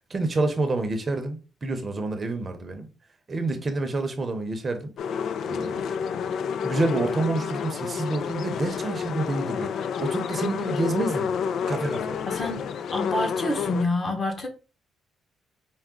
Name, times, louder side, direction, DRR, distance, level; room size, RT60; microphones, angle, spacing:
voice 1, 0.1-2.9 3.3-4.9 5.5-5.9 6.2-6.3 6.6-11.3 11.7-12.2, right 2 dB, 35° right, 0.7 m, -28 dB
sound 1, 5.0-13.9, left 7 dB, 70° left, 0.3 m, -29 dB
voice 2, 12.3-12.6 12.9-14.5, left 2 dB, 35° left, 1.1 m, -27 dB
4.7 x 2.1 x 3.6 m
cardioid pair, 90°, 0 cm